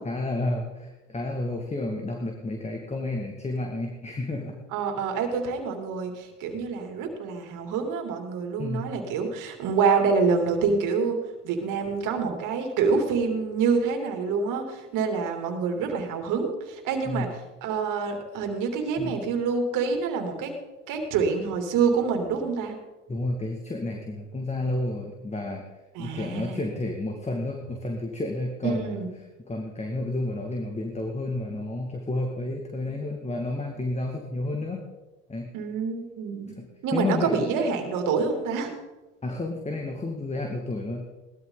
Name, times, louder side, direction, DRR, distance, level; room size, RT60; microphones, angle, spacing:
voice 1, 0.0-4.6 8.6-8.9 17.1-17.3 19.0-19.1 23.1-25.6 26.0-29.0 29.5-34.8 35.3-35.5 36.9-37.5 39.2-41.1, left 2 dB, 20° left, 2 dB, 2.2 m, -31 dB
voice 2, 4.7-11.2 11.4-17.3 17.6-20.5 20.9-22.7 25.9-26.7 28.6-29.1 35.5-36.5 36.8-38.7, right 5 dB, 60° right, 4 dB, 3.0 m, -26 dB
18.5 x 13.0 x 4.0 m, 1.1 s
supercardioid pair, 85°, 35 cm